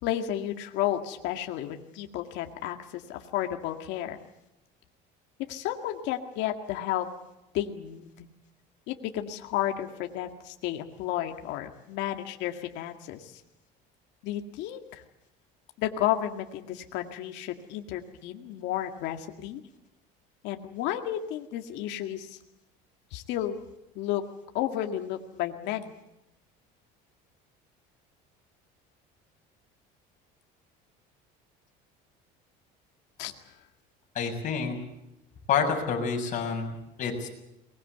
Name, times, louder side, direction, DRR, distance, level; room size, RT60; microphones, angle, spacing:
voice 1, 0.0-4.2 5.5-7.1 7.5-8.3 8.9-13.4 14.2-15.0 15.8-19.6 20.4-22.4 23.1-23.6 24.0-24.2 24.5-26.0 33.2-33.3, left 12 dB, 70° left, 4 dB, 2.0 m, -32 dB
voice 2, 34.2-34.8 35.5-37.3, left 6 dB, 40° left, 1 dB, 7.1 m, -28 dB
22.5 x 20.5 x 8.2 m, 0.89 s
cardioid pair, 135°, 19 cm